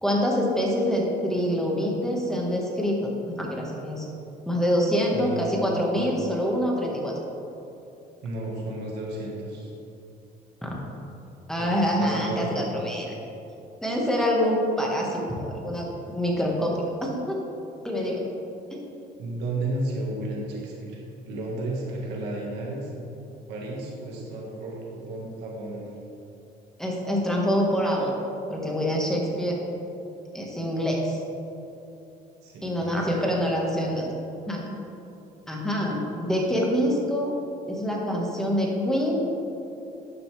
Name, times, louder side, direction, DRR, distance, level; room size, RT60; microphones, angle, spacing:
voice 1, 0.0-4.1 4.5-7.1 10.6-10.7 11.5-13.1 13.8-16.7 17.0-17.4 17.8-18.2 18.7-18.8 26.8-28.1 28.5-29.6 30.3-31.2 32.6-34.1 34.5-34.6 35.5-37.3 37.7-39.2, equal, 5° left, -2 dB, 1.7 m, -25 dB
voice 2, 5.1-5.6 8.2-9.7 11.6-12.7 19.2-21.0 21.3-22.9 23.5-25.9 32.4-33.3, right 2 dB, 85° right, -2 dB, 1.8 m, -33 dB
11.5 x 6.9 x 3.5 m, 2.8 s
cardioid pair, 110°, 17 cm